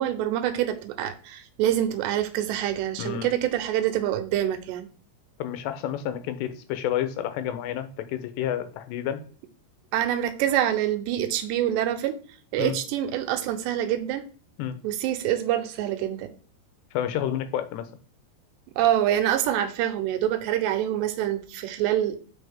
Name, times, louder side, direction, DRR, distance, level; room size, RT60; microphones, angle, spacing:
voice 1, 0.0-4.9 9.9-12.1 12.5-14.2 14.8-16.3 18.8-22.2, right 11 dB, 90° right, 9 dB, 3.0 m, -26 dB
voice 2, 3.0-3.3 5.4-9.2 12.6-12.8 14.6-14.8 16.9-17.9, left 10 dB, 85° left, 10 dB, 3.0 m, -30 dB
7.9 x 5.5 x 3.5 m, 0.42 s
omnidirectional pair, 4.8 m